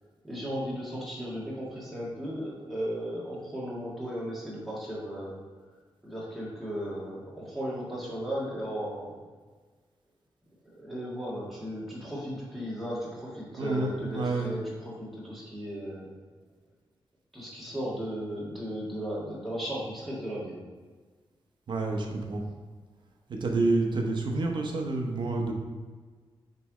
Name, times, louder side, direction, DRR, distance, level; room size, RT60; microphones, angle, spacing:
voice 1, 0.2-5.4 6.0-9.2 10.8-16.1 17.3-20.6, equal, ahead, -7 dB, 1.6 m, -36 dB
voice 2, 13.6-14.5 21.7-22.4 23.3-25.5, right 3 dB, 55° right, 1 dB, 0.8 m, -28 dB
6.7 x 3.2 x 4.8 m, 1.4 s
wide cardioid pair, 180°, 9 cm